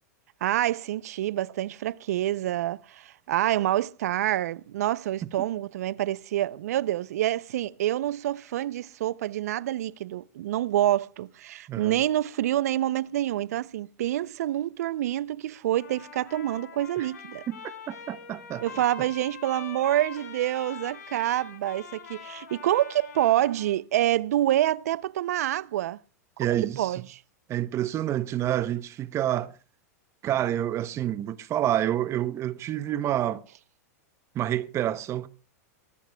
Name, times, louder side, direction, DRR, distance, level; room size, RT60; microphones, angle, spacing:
voice 1, 0.4-17.4 18.6-26.0 26.4-27.2, right 13 dB, 70° right, 0.6 m, -27 dB
voice 2, 11.7-12.0 17.0-17.1 17.5-17.6 17.9-18.6 26.4-27.0 27.5-29.5 30.2-33.4 34.3-35.3, right 12 dB, 35° right, 0.8 m, -28 dB
Trumpet, 15.7-23.8, left 7 dB, 85° left, 5.2 m, -44 dB
23.0 x 16.5 x 2.3 m
hypercardioid pair, 105°, 9 cm